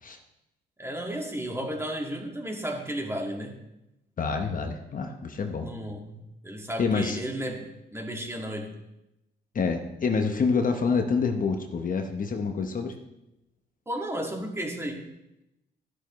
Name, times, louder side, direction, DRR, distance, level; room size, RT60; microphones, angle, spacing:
voice 1, 0.8-3.6 5.6-7.6 7.9-8.7 13.9-15.0, right 1 dB, 10° right, 1 dB, 2.0 m, -33 dB
voice 2, 4.2-5.7 6.8-7.2 9.5-12.9, left 5 dB, 45° left, 5 dB, 1.0 m, -27 dB
12.0 x 11.0 x 3.1 m, 0.90 s
cardioid pair, 90°, 20 cm